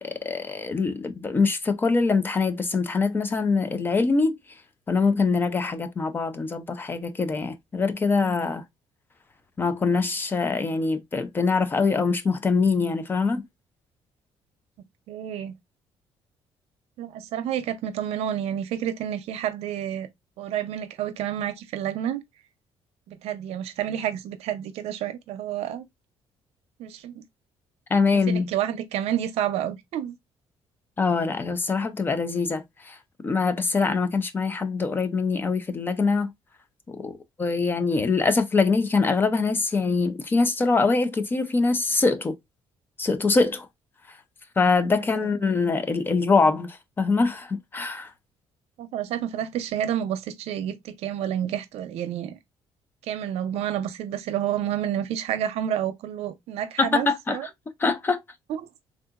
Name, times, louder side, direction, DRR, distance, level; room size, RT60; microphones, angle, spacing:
voice 1, 0.0-4.4 4.9-8.6 9.6-13.4 27.9-28.5 31.0-33.0 33.2-36.3 37.0-42.4 43.0-43.7 44.1-44.2 44.6-48.1 56.8-57.5 57.8-58.2, left 4 dB, 20° left, 0.4 m, -23 dB
voice 2, 15.1-15.5 17.0-20.1 20.4-22.2 23.1-25.8 26.8-27.2 28.1-30.1 48.8-52.4 53.0-57.5 58.5-58.7, right 10 dB, 70° right, 0.6 m, -29 dB
3.5 x 2.7 x 2.4 m
cardioid pair, 180°, 11 cm